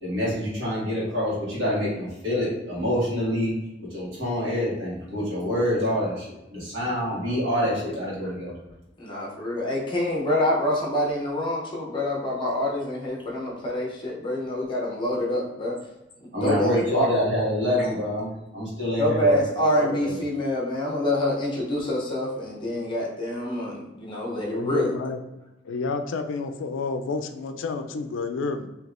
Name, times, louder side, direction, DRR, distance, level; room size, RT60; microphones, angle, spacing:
voice 1, 0.0-3.5 3.9-8.5 16.3-18.3 18.5-19.4 19.7-20.1, left 1 dB, 70° right, -7 dB, 1.5 m, -26 dB
voice 2, 9.0-15.8 16.4-17.1 19.0-24.9, left 1 dB, 25° left, -3 dB, 0.7 m, -26 dB
voice 3, 24.5-25.2 25.6-28.7, left 4 dB, 80° left, 7 dB, 0.3 m, -29 dB
3.3 x 2.8 x 2.5 m, 0.98 s
head